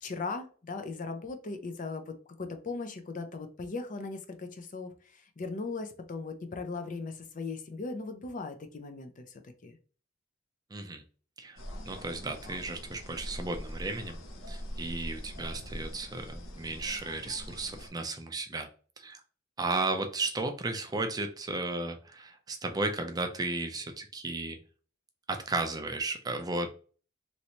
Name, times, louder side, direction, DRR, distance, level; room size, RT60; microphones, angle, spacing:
voice 1, 0.0-9.8, left 3 dB, 40° left, 7 dB, 0.5 m, -38 dB
voice 2, 10.7-11.0 11.4-11.6 11.8-14.2 14.5-18.7 19.0-19.2 19.6-24.6 25.3-26.7, right 3 dB, 20° right, 5 dB, 0.4 m, -34 dB
sound 1, 11.6-17.9, equal, 85° left, 1.1 m, -43 dB
3.1 x 2.7 x 2.8 m, 0.40 s
head